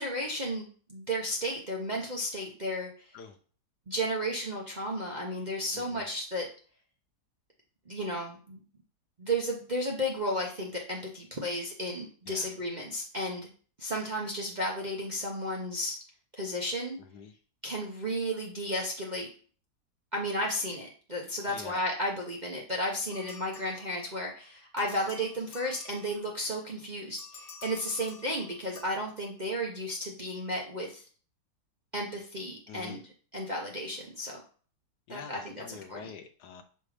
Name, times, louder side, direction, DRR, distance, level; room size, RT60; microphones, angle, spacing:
voice 1, 0.0-3.1 3.9-6.5 7.9-8.6 9.2-13.5 13.8-16.0 16.4-17.0 17.6-19.3 20.1-31.0 31.9-33.0 33.3-34.4 35.1-36.1, equal, 40° right, -2 dB, 0.6 m, -33 dB
voice 2, 5.7-6.1 12.3-12.6 17.0-17.3 21.5-21.8 32.7-33.0 35.1-36.6, left 6 dB, 75° left, 8 dB, 1.2 m, -46 dB
sound 1, 23.1-24.3 24.8-26.5 27.2-28.8, left 5 dB, 55° left, 0.9 m, -50 dB
6.0 x 3.4 x 4.9 m, 0.42 s
omnidirectional pair, 1.9 m